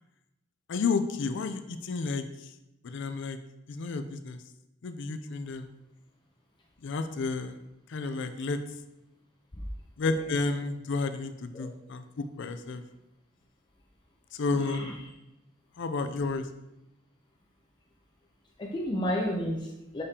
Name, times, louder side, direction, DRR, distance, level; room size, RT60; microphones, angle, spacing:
voice 1, 0.7-2.5 2.8-3.4 3.7-4.4 4.8-5.7 6.8-7.6 7.9-8.6 10.0-12.8 14.3-14.8 15.8-16.5, left 4 dB, 65° left, 9 dB, 0.4 m, -31 dB
voice 2, 14.5-15.0 18.6-20.0, equal, 20° left, -1 dB, 0.6 m, -32 dB
6.8 x 5.0 x 2.8 m, 0.90 s
head